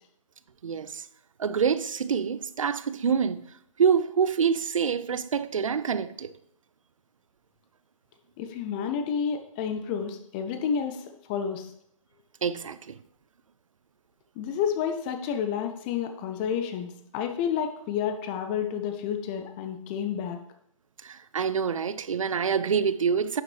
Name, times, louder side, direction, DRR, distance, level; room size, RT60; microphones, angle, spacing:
voice 1, 0.6-1.0 1.4-3.4 3.8-6.3 12.4-13.0 21.0-23.4, right 6 dB, 65° right, 0.5 m, -26 dB
voice 2, 8.4-11.7 14.4-20.4, left 7 dB, 15° left, 0.4 m, -30 dB
10.5 x 7.1 x 3.2 m
figure-of-eight pair, 145°, 18 cm